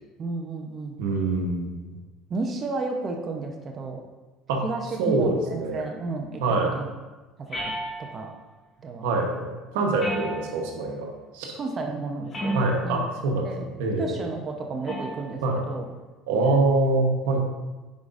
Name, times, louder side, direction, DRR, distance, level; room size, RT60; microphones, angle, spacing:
voice 1, 0.2-1.0 2.3-4.0 4.6-6.4 6.7-6.9 7.4-7.6 8.0-8.3 8.8-9.1 11.5-12.6 12.8-13.2 13.4-13.6 14.0-15.9 16.3-16.6, right 3 dB, 35° right, 2 dB, 0.8 m, -32 dB
voice 2, 1.0-1.9 4.5-4.6 5.0-5.8 6.4-6.7 9.0-11.1 11.3-11.6 12.5-13.5 13.8-14.1 15.4-15.6 16.3-17.4, right 2 dB, 90° right, 1 dB, 1.1 m, -24 dB
sound 1, 7.5-8.4 10.0-10.8 12.3-13.0 14.9-15.3, right 1 dB, 30° left, 2.1 m, -32 dB
9.2 x 4.9 x 2.5 m, 1.2 s
supercardioid pair, 110°, 0 cm